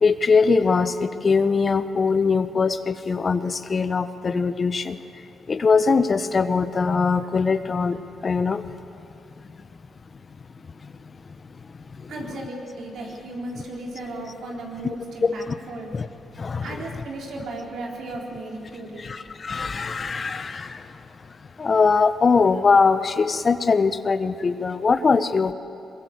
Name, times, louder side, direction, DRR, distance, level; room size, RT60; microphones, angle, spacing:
voice 1, 0.0-5.0 5.5-8.6 12.0-12.3 14.8-15.0 15.2-15.6 15.9-16.1 16.4-16.8 19.0-21.0 21.6-25.5, left 4 dB, 45° left, 11 dB, 1.1 m, -21 dB
voice 2, 12.1-15.9 16.6-19.1, right 2 dB, 70° right, -1 dB, 4.1 m, -35 dB
22.5 x 22.0 x 8.1 m, 2.7 s
supercardioid pair, 60°, 0 cm